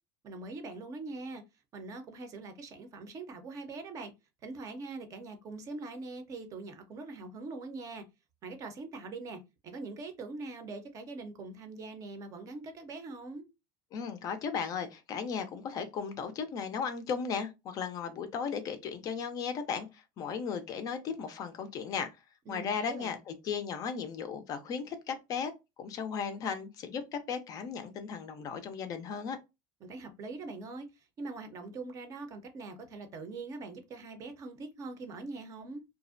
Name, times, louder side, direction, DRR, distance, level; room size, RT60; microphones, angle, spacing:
voice 1, 0.2-1.4 1.7-4.1 4.4-8.0 8.4-13.5 22.5-23.1 29.8-35.8, right 3 dB, 35° right, 0.6 m, -42 dB
voice 2, 13.9-22.1 22.5-25.5 25.8-29.4, left 6 dB, 35° left, 0.4 m, -36 dB
2.4 x 2.0 x 2.5 m
supercardioid pair, 135°, 10 cm